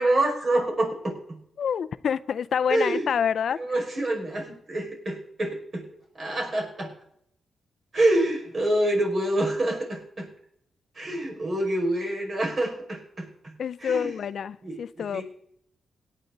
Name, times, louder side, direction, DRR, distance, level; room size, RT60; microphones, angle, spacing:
voice 1, 0.0-1.4 2.7-3.1 3.6-5.9 6.1-6.9 7.9-10.3 11.0-13.5 13.8-14.2 14.6-15.2, right 1 dB, 45° right, 5.5 m, -27 dB
voice 2, 1.6-3.6 13.6-15.2, left 7 dB, 70° left, 0.5 m, -27 dB
18.0 x 9.3 x 3.9 m
cardioid pair, 85°, 0 cm